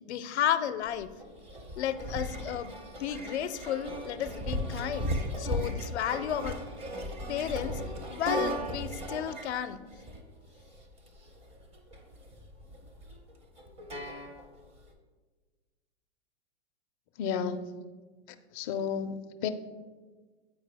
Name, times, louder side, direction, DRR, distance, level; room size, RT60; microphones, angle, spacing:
voice 1, 0.1-1.1 1.8-5.1 5.4-6.6 7.3-7.8 8.1-9.8, left 9 dB, 85° left, 12 dB, 0.5 m, -32 dB
sound 1, 0.9-14.8, equal, 20° right, 0.7 m, -37 dB
voice 2, 17.2-17.8 18.5-19.5, left 7 dB, 35° left, 7 dB, 0.4 m, -32 dB
8.4 x 4.6 x 3.3 m, 1.3 s
hypercardioid pair, 130°, 32 cm